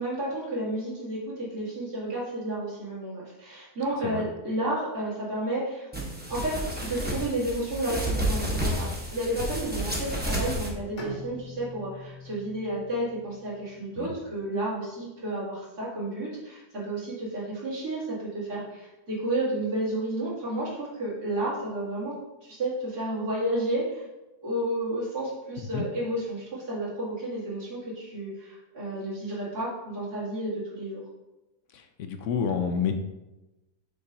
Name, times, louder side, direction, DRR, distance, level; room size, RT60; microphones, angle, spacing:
voice 1, 0.0-5.9 6.3-6.5 6.8-22.1 22.4-24.0 24.4-31.0, right 1 dB, 80° right, -9 dB, 3.0 m, -31 dB
sound 1, 5.9-10.7, right 1 dB, 10° right, 0.7 m, -30 dB
Bowed string instrument, 11.0-14.6, left 3 dB, 90° left, 1.8 m, -45 dB
voice 2, 31.7-33.0, left 6 dB, 70° left, 6 dB, 0.7 m, -29 dB
6.6 x 5.5 x 2.7 m, 1.0 s
omnidirectional pair, 1.7 m